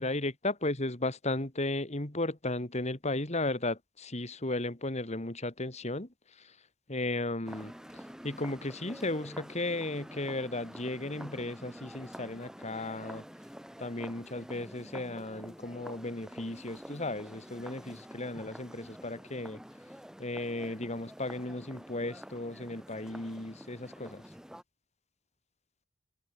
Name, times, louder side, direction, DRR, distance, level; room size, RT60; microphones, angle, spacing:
voice 1, 0.0-6.1 6.4-6.5 6.9-13.2 13.8-19.6 20.2-24.2, left 2 dB, 35° left, 2.4 m, -35 dB
sound 1, 7.5-24.6, equal, 5° right, 3.1 m, -48 dB
head